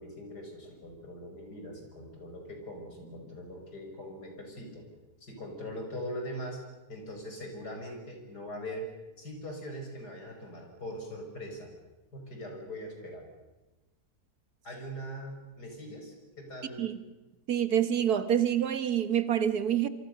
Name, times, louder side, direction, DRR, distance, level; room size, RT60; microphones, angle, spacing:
voice 1, 0.0-4.9 5.2-6.6 6.9-8.9 9.2-11.7 12.1-13.3 14.6-16.9, equal, 75° left, 3 dB, 6.2 m, -41 dB
voice 2, 17.5-19.9, right 9 dB, 70° right, 12 dB, 1.8 m, -27 dB
27.0 x 24.5 x 6.7 m, 1.1 s
omnidirectional pair, 1.7 m